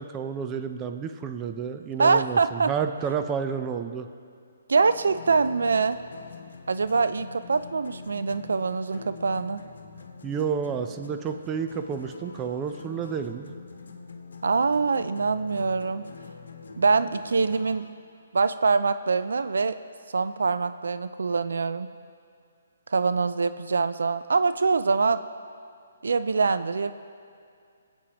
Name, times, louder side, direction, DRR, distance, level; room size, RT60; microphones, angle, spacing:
voice 1, 0.0-4.1 10.2-13.5, right 7 dB, 20° right, 7 dB, 0.6 m, -30 dB
voice 2, 2.0-2.7 4.7-6.0 6.7-9.6 14.4-16.1 16.8-17.9 18.3-19.8 20.1-21.9 22.9-25.2 26.0-26.9, right 4 dB, 80° right, 12 dB, 0.4 m, -24 dB
sound 1, 4.8-17.9, left 5 dB, 75° left, 1.1 m, -45 dB
25.0 x 8.6 x 3.0 m, 2.3 s
hypercardioid pair, 150°, 0 cm